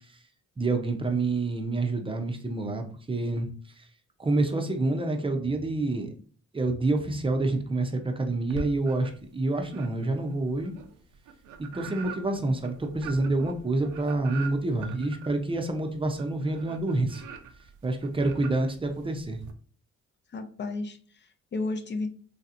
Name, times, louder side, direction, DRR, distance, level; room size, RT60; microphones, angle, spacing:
voice 1, 0.6-3.5 3.8-3.9 4.2-6.1 6.5-10.7 11.6-17.2 17.8-19.4, right 2 dB, 20° right, 4 dB, 0.5 m, -28 dB
sound 1, 8.5-9.3 9.7-19.5, right 5 dB, 85° right, 0.6 m, -43 dB
voice 2, 20.3-22.1, left 3 dB, 40° left, 8 dB, 0.5 m, -33 dB
3.2 x 2.8 x 2.5 m, 0.43 s
cardioid pair, 90°, 30 cm